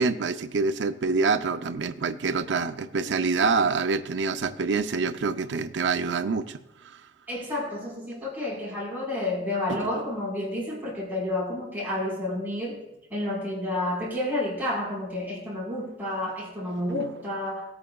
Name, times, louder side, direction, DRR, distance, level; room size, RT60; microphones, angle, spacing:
voice 1, 0.0-6.6 6.8-7.0 9.7-9.9, right 4 dB, 80° right, 9 dB, 0.6 m, -26 dB
voice 2, 7.3-12.8 13.1-17.7, left 1 dB, 10° right, -6 dB, 4.3 m, -30 dB
18.0 x 8.8 x 2.3 m, 0.90 s
head